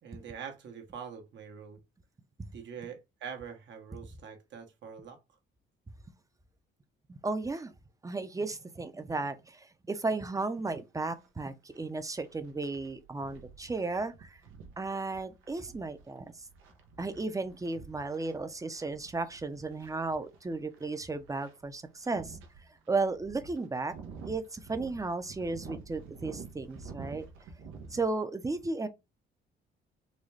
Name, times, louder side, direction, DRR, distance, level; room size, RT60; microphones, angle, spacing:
voice 1, 0.0-1.8 2.5-5.2, right 7 dB, 65° right, 1.1 m, -44 dB
voice 2, 7.1-7.7 8.0-14.4 14.8-16.3 17.0-22.4 22.9-23.9 24.3-27.3 27.9-28.9, right 3 dB, 15° right, 0.6 m, -34 dB
sound 1, 10.1-10.2 10.7-10.8 11.2-28.0, right 5 dB, 85° right, 0.8 m, -49 dB
4.0 x 2.3 x 3.2 m
cardioid pair, 90°, 20 cm